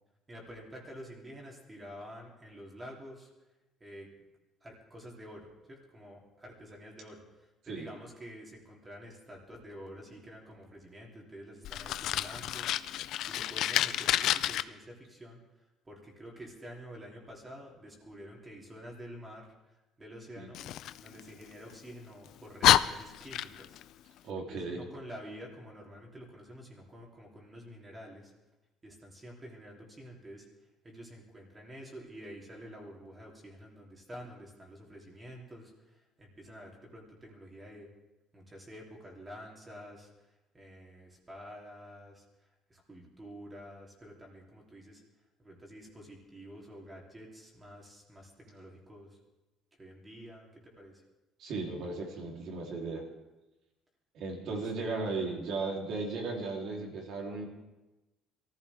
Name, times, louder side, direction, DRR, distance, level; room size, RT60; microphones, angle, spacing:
voice 1, 0.3-3.3 3.8-4.1 4.6-12.7 13.3-15.4 15.8-20.6 21.0-23.8 24.5-28.3 28.8-30.5 30.8-37.9 38.3-42.2 42.7-45.0 45.4-49.2 49.8-51.0 54.5-54.6, equal, 15° right, -2 dB, 3.2 m, -49 dB
Fire, 11.6-14.6 20.5-21.8 22.3-22.4 22.6-23.8, left 12 dB, 65° left, 0.4 m, -29 dB
voice 2, 24.2-24.8 51.4-53.1 54.1-57.4, right 3 dB, 60° right, -1 dB, 3.5 m, -36 dB
23.5 x 14.5 x 3.6 m, 1.0 s
cardioid pair, 145°, 0 cm